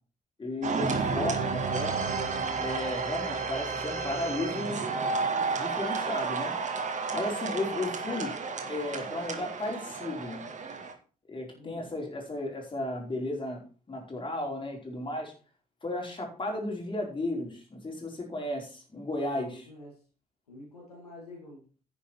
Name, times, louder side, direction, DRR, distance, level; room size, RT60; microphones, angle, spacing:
voice 1, 0.4-2.0 2.6-4.9 5.5-6.5 7.1-8.3 8.6-10.4 11.3-13.6 13.9-15.3 15.8-19.7, left 1 dB, 25° left, 0 dB, 4.8 m, -34 dB
sound 1, 0.6-10.9, right 4 dB, 40° right, 1.9 m, -32 dB
voice 2, 11.6-11.9 19.2-20.0 20.5-21.6, left 1 dB, 80° left, -1 dB, 2.3 m, -48 dB
10.5 x 8.7 x 4.6 m, 0.37 s
figure-of-eight pair, 45°, 19 cm